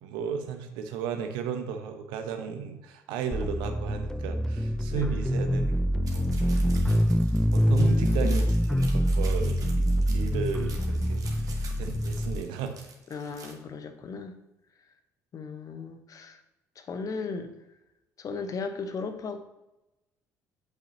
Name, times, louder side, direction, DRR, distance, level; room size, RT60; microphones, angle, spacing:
voice 1, 0.0-5.8 6.1-7.2 7.5-12.8, right 7 dB, 65° right, 7 dB, 0.9 m, -35 dB
sound 1, 3.3-12.4, equal, 5° left, 0.4 m, -25 dB
voice 2, 4.9-5.2 7.7-8.4 13.1-14.4 15.3-16.4 16.7-17.5 18.2-19.4, left 5 dB, 40° left, 8 dB, 1.0 m, -36 dB
sound 2, 6.1-13.5, right 4 dB, 45° right, 1.8 m, -48 dB
8.5 x 8.1 x 2.9 m, 0.95 s
figure-of-eight pair, 50°, 9 cm